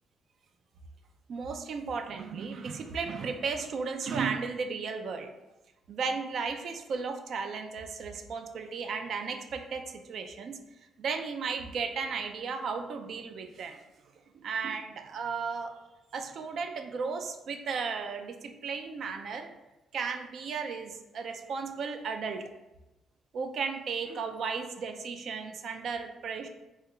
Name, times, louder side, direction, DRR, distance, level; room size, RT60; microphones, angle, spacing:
voice 1, 1.3-5.3 5.9-10.6 11.0-13.8 14.4-15.7 16.1-19.5 19.9-22.5 23.3-26.5, right 5 dB, 60° right, 6 dB, 0.3 m, -35 dB
3.2 x 2.3 x 2.9 m, 0.99 s
cardioid pair, 90°, 0 cm